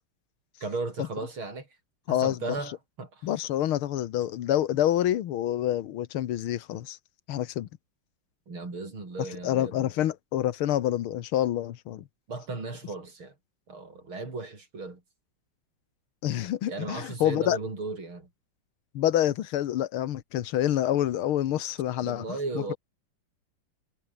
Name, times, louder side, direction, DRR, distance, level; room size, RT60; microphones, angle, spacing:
voice 1, 0.6-1.7 2.1-3.3 8.5-9.8 12.3-13.3 13.7-15.0 16.7-18.3 22.0-22.8, right 3 dB, 75° right, 6.6 m, -36 dB
voice 2, 2.1-2.4 3.2-7.0 7.3-7.7 9.4-12.0 16.2-17.6 19.0-22.2, left 12 dB, 90° left, 1.9 m, -27 dB
omnidirectional pair, 2.3 m